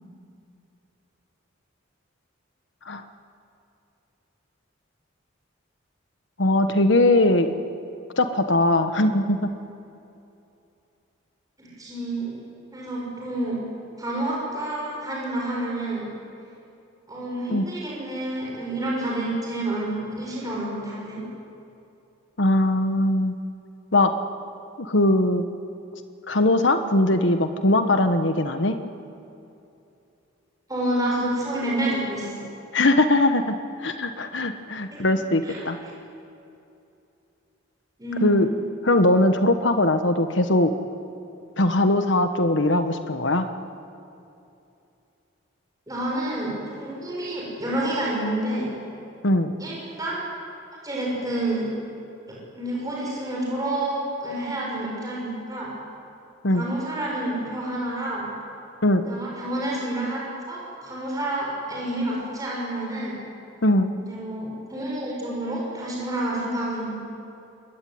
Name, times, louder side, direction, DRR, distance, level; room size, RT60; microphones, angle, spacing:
voice 1, 6.4-7.6 8.2-9.5 17.5-17.7 22.4-23.4 23.9-24.1 24.8-25.4 26.3-28.8 32.7-35.8 38.2-38.5 38.8-40.7 41.6-43.5 49.2-49.5 56.4-56.6 58.8-59.0 63.6-63.9, left 1 dB, 65° left, 8 dB, 1.3 m, -20 dB
voice 2, 11.6-12.4 12.7-13.6 14.0-16.1 17.1-21.2 30.7-32.5 34.9-35.0 35.4-35.7 38.0-38.4 45.9-48.7 49.6-50.3 50.8-51.7 52.3-55.7 56.5-58.2 59.0-60.2 60.5-63.2 64.0-66.9, right 1 dB, 20° right, -4 dB, 6.8 m, -29 dB
26.5 x 22.0 x 9.5 m, 2.7 s
head